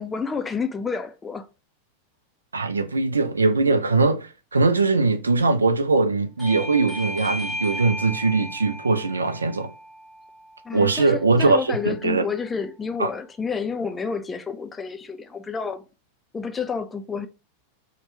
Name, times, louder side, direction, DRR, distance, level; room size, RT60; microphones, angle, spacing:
voice 1, 0.0-1.5 10.6-15.8 16.3-17.3, left 5 dB, 15° left, 0.3 m, -29 dB
voice 2, 2.5-9.7 10.7-12.2 13.0-13.1, right 3 dB, 75° right, 0.3 m, -21 dB
Bell / Doorbell, 6.4-11.6, equal, ahead, 0.7 m, -35 dB
2.8 x 2.1 x 3.1 m
figure-of-eight pair, 90°, 0 cm